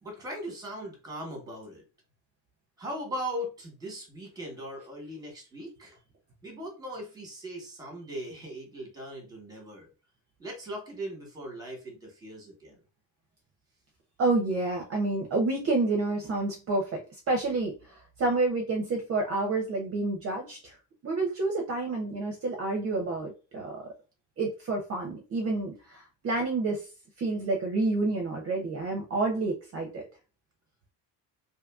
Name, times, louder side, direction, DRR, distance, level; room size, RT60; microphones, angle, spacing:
voice 1, 0.0-1.8 2.8-6.0 6.4-9.9 10.4-12.8, equal, 10° right, 1 dB, 1.0 m, -39 dB
voice 2, 14.2-17.0 17.3-20.8 21.0-23.8 24.4-26.9 27.2-30.1, right 3 dB, 40° right, 1 dB, 0.6 m, -29 dB
2.7 x 2.5 x 2.3 m, 0.32 s
cardioid pair, 140°, 38 cm